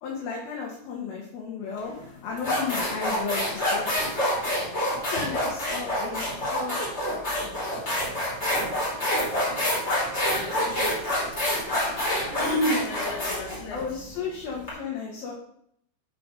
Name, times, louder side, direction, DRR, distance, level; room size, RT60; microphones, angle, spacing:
voice 1, 0.0-3.9 5.1-6.8 13.7-15.3, left 5 dB, 65° left, -2 dB, 2.8 m, -34 dB
sound 1, 1.8-1.9 2.4-14.7, left 1 dB, 20° left, 2.5 m, -27 dB
voice 2, 10.2-11.2 12.3-13.8, equal, 50° left, -2 dB, 3.6 m, -31 dB
6.8 x 5.7 x 5.1 m, 0.68 s
omnidirectional pair, 5.1 m